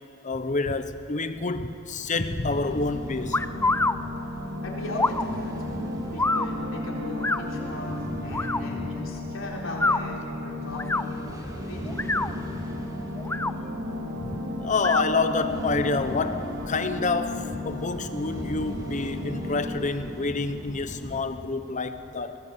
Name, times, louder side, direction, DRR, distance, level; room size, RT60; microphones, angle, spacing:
voice 1, 0.2-3.4 14.2-22.4, left 3 dB, 40° left, 10 dB, 1.0 m, -28 dB
sound 1, 2.0-21.2, equal, 20° right, 2.6 m, -40 dB
sound 2, 2.7-20.0, left 1 dB, 70° right, 3.4 m, -35 dB
sound 3, 3.3-3.9 4.9-5.2 6.2-6.5 7.2-7.4 8.3-8.6 9.7-10.0 10.7-11.0 11.9-12.3 13.2-13.5 14.8-15.0, left 2 dB, 10° left, 0.4 m, -25 dB
voice 2, 4.6-5.5 6.1-12.3, left 1 dB, 70° left, -2 dB, 4.2 m, -37 dB
23.5 x 19.0 x 8.0 m, 3.0 s
head